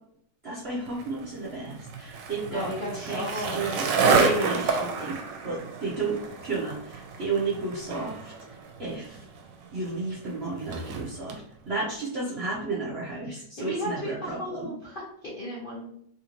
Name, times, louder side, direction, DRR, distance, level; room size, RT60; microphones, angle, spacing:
voice 1, 0.4-3.9 4.2-5.2 5.4-8.3 8.8-9.3 9.7-14.7, right 3 dB, 50° right, -7 dB, 0.8 m, -32 dB
Skateboard, 0.9-11.4, right 4 dB, 85° right, 1.3 m, -30 dB
voice 2, 2.5-3.6 13.2-15.9, equal, 50° left, -6 dB, 0.6 m, -35 dB
3.4 x 2.6 x 2.9 m, 0.68 s
omnidirectional pair, 1.9 m